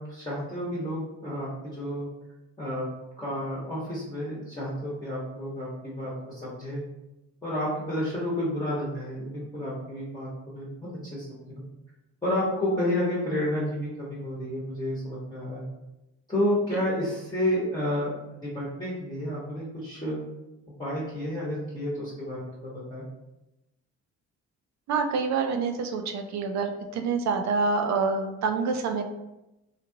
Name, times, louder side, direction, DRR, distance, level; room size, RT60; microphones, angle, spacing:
voice 1, 0.0-2.1 2.6-6.8 7.4-10.3 10.5-11.6 12.2-15.7 16.3-20.2 20.8-23.1, left 1 dB, 15° left, -8 dB, 1.0 m, -31 dB
voice 2, 24.9-29.0, right 4 dB, 65° right, 5 dB, 0.5 m, -27 dB
2.9 x 2.4 x 2.7 m, 0.94 s
cardioid pair, 90°, 30 cm